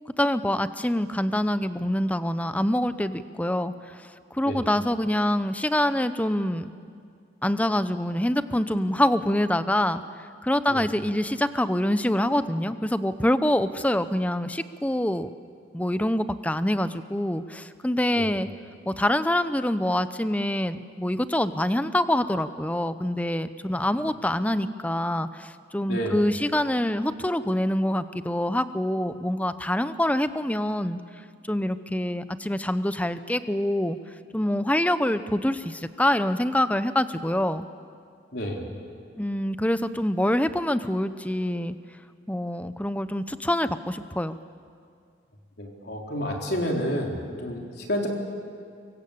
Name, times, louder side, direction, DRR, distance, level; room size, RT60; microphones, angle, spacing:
voice 1, 0.2-6.7 7.4-10.0 10.4-15.3 15.7-18.5 18.9-31.0 31.5-34.0 34.3-37.7 39.2-41.8 42.3-44.4, left 1 dB, 10° left, 12 dB, 0.7 m, -25 dB
voice 2, 25.9-26.3 38.3-38.7 45.6-48.1, equal, 60° left, 0 dB, 4.1 m, -30 dB
24.5 x 23.0 x 8.6 m, 2.2 s
head